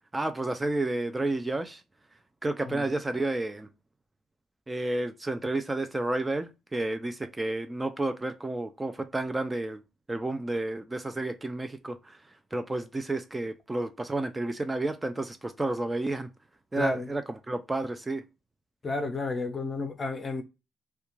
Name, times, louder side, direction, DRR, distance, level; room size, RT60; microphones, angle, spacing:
voice 1, 0.1-1.8 2.4-3.7 4.7-9.8 10.1-16.3 16.7-18.2, right 2 dB, 15° right, 0.3 m, -31 dB
voice 2, 16.8-17.1 18.8-20.4, left 3 dB, 35° left, 0.5 m, -32 dB
2.3 x 2.2 x 3.0 m
cardioid pair, 90°, 0 cm